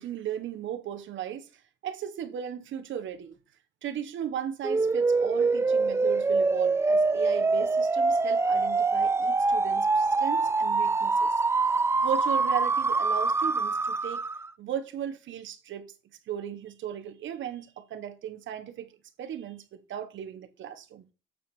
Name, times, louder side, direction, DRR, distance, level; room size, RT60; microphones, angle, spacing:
voice 1, 0.0-1.5 1.8-3.4 3.8-11.3 12.0-14.2 14.6-15.9 16.3-21.1, right 9 dB, 75° right, 1.3 m, -36 dB
sound 1, 4.6-14.5, right 3 dB, 15° right, 0.3 m, -25 dB
8.1 x 4.6 x 4.5 m
cardioid pair, 90°, 20 cm